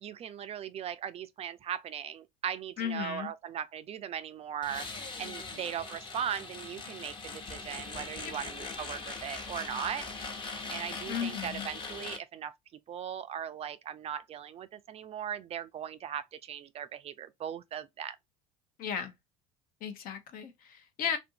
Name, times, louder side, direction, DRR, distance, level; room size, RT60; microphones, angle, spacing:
voice 1, 0.0-4.9 5.2-10.1 10.7-12.5 12.9-18.2, right 9 dB, 35° right, 0.4 m, -38 dB
voice 2, 2.8-3.3 8.2-8.3 11.1-11.7 18.8-19.1 19.8-21.2, left 8 dB, 55° left, 0.8 m, -35 dB
sound 1, 4.6-12.2, left 4 dB, 30° left, 0.9 m, -41 dB
2.7 x 2.5 x 2.7 m
hypercardioid pair, 80°, 17 cm